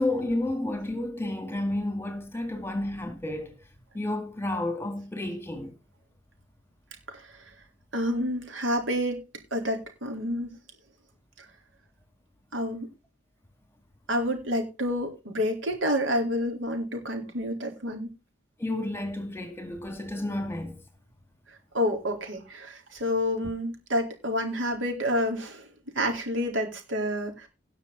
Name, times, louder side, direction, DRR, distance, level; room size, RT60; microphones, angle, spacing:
voice 1, 0.0-3.6 3.9-5.7 18.6-20.8, left 1 dB, 15° left, 2.0 m, -31 dB
voice 2, 7.9-9.2 9.5-10.5 12.5-12.9 14.1-18.1 21.7-25.6 26.0-27.5, equal, 90° right, 4.1 m, -28 dB
18.0 x 6.1 x 4.1 m
head